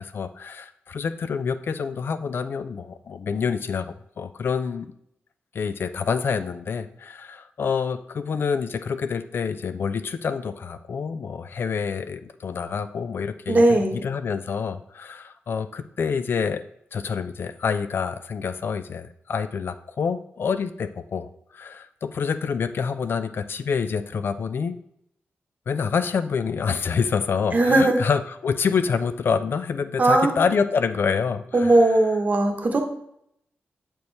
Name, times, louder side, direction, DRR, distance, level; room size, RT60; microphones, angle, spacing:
voice 1, 0.0-4.9 5.5-16.6 16.9-24.7 25.7-31.8, left 6 dB, 60° left, 11 dB, 0.4 m, -27 dB
voice 2, 13.5-14.0 27.5-28.0 30.0-30.4 31.5-32.8, right 2 dB, 40° right, 4 dB, 0.9 m, -18 dB
6.9 x 4.5 x 3.2 m, 0.73 s
wide cardioid pair, 110°, 4 cm